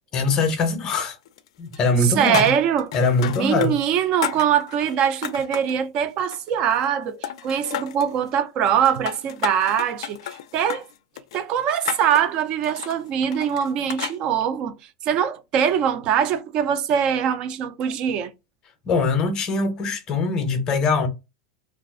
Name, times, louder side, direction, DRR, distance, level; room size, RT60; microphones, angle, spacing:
voice 1, 0.1-1.2 1.6-2.5 2.9-3.7 18.9-21.1, left 3 dB, 25° left, 0.6 m, -22 dB
sound 1, 0.9-1.5 1.7-3.7 4.0-5.8 6.2-7.0 7.2-8.1 8.7-14.2, left 11 dB, 75° left, 0.3 m, -33 dB
voice 2, 2.0-2.9 3.4-10.8 11.3-14.8 15.0-18.3, right 8 dB, 30° right, 0.3 m, -22 dB
2.4 x 2.4 x 3.6 m
supercardioid pair, 180°, 3 cm